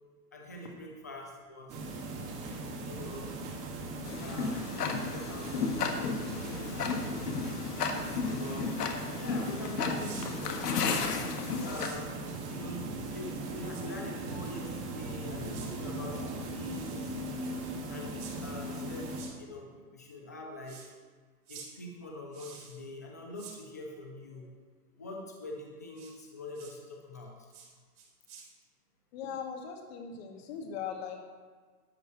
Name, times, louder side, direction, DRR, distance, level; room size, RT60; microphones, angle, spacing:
voice 1, 0.3-1.7 2.8-3.3 4.2-7.1 7.8-8.7 9.2-11.3 11.6-17.1 17.9-19.1 19.4-20.8 21.5-24.5 25.0-27.3, left 2 dB, 15° left, 0 dB, 0.3 m, -44 dB
sound 1, 1.7-19.2, right 2 dB, 25° right, 1.9 m, -39 dB
Tick-tock, 4.0-11.9, left 5 dB, 80° left, 1.7 m, -33 dB
sound 2, 9.9-10.3 11.6-12.0 13.7-13.8 15.5-15.7 16.6-17.2 18.2-18.3 19.1-19.3 20.6-20.9 21.5-21.7 22.3-22.8 23.4-23.6 25.9-26.1 26.5-26.7 27.5-27.7 28.0-28.4, right 6 dB, 60° right, 4.0 m, -49 dB
voice 2, 29.1-31.2, left 7 dB, 40° left, 2 dB, 2.0 m, -39 dB
12.0 x 5.6 x 7.6 m, 1.5 s
hypercardioid pair, 155°, 47 cm